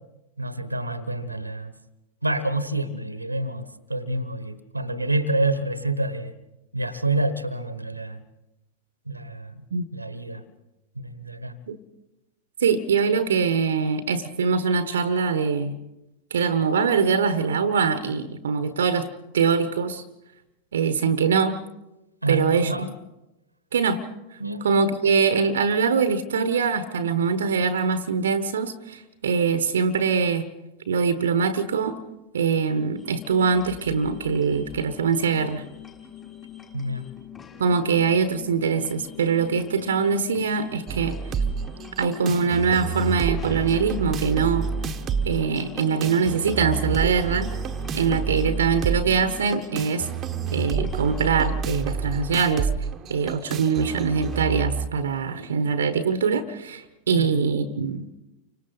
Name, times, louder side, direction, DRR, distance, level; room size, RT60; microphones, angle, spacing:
voice 1, 0.4-1.7 2.2-6.3 6.7-8.2 9.1-9.6 9.9-10.4 10.9-11.6 22.2-22.9 24.4-24.6 36.7-37.1 57.1-57.3, right 2 dB, 85° right, 14 dB, 1.3 m, -28 dB
voice 2, 12.6-15.8 16.3-20.0 20.7-21.6 22.3-22.9 23.7-24.0 24.6-30.5 30.9-32.0 32.3-35.6 37.6-41.2 42.0-44.7 45.2-47.5 47.9-50.1 50.5-52.7 53.1-58.2, right 5 dB, 65° right, 12 dB, 1.1 m, -23 dB
sound 1, 32.9-51.2, left 9 dB, 20° left, 5.6 m, -44 dB
sound 2, 40.9-54.9, right 6 dB, 25° right, 1.2 m, -29 dB
29.5 x 25.5 x 4.0 m, 0.96 s
figure-of-eight pair, 90°, 0 cm